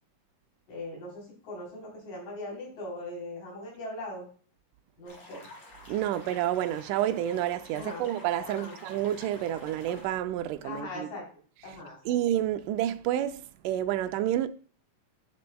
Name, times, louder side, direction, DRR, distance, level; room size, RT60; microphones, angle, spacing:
voice 1, 0.7-4.3 5.0-5.4 7.7-8.0 8.4-8.8 10.6-11.2 11.6-12.0, left 2 dB, 80° left, 5.3 m, -40 dB
sound 1, 5.1-10.1, left 1 dB, 30° left, 3.1 m, -49 dB
voice 2, 5.9-11.1 11.7-11.8 12.1-14.5, right 12 dB, 85° right, 2.1 m, -29 dB
10.5 x 6.9 x 2.3 m
omnidirectional pair, 3.7 m